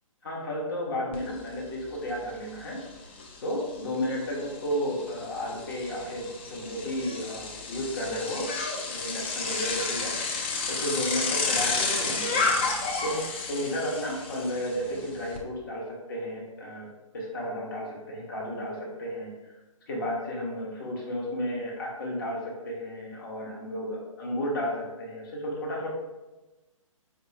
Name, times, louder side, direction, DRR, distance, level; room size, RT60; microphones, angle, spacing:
voice 1, 0.2-2.8 3.4-8.5 8.8-10.2 10.7-12.6 13.0-16.9 17.1-19.5 19.9-25.9, equal, 40° left, -3 dB, 1.0 m, -33 dB
Bicycle, 1.1-1.2 1.6-15.4, left 4 dB, 20° left, 0.3 m, -32 dB
4.6 x 2.4 x 3.1 m, 1.1 s
figure-of-eight pair, 130°, 18 cm